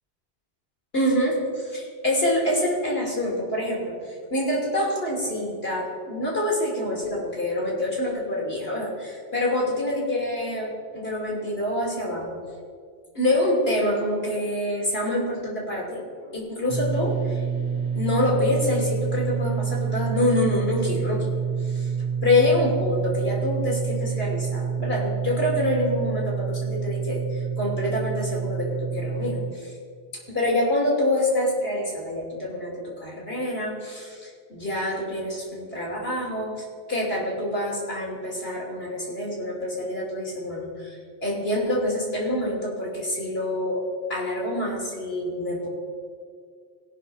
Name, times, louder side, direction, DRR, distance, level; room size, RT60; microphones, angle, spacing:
voice 1, 0.9-12.4 13.1-17.4 17.9-21.3 21.6-21.9 22.2-29.7 30.3-43.8 44.1-45.7, left 1 dB, 65° left, -3 dB, 3.1 m, -26 dB
sound 1, 16.7-29.5, right 6 dB, 75° right, 1.4 m, -28 dB
17.5 x 5.9 x 5.6 m, 2.1 s
omnidirectional pair, 1.1 m